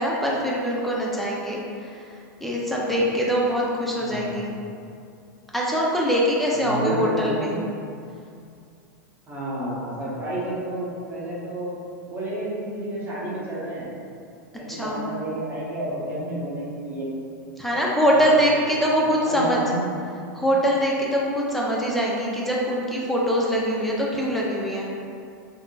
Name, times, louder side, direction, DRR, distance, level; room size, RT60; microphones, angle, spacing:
voice 1, 0.0-2.0 2.4-4.5 5.5-7.5 14.7-15.0 17.6-19.6 20.3-25.0, equal, ahead, -4 dB, 0.5 m, -23 dB
voice 2, 4.0-4.5 6.5-7.6 9.3-11.7 12.1-13.9 14.5-17.1 17.7-18.2 19.2-19.9, right 1 dB, 20° right, -8 dB, 1.0 m, -30 dB
3.4 x 2.7 x 2.4 m, 2.4 s
hypercardioid pair, 115°, 10 cm